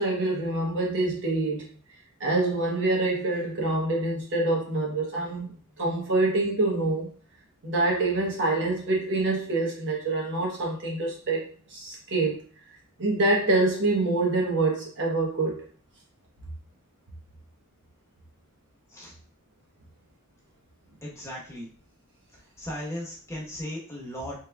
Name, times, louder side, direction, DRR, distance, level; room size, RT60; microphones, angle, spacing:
voice 1, 0.0-1.7 2.2-7.1 7.6-12.4 13.0-15.7, right 2 dB, 55° right, -2 dB, 1.0 m, -26 dB
voice 2, 21.0-21.7 22.6-24.3, left 1 dB, 15° left, -4 dB, 1.0 m, -36 dB
3.5 x 3.2 x 2.3 m, 0.42 s
head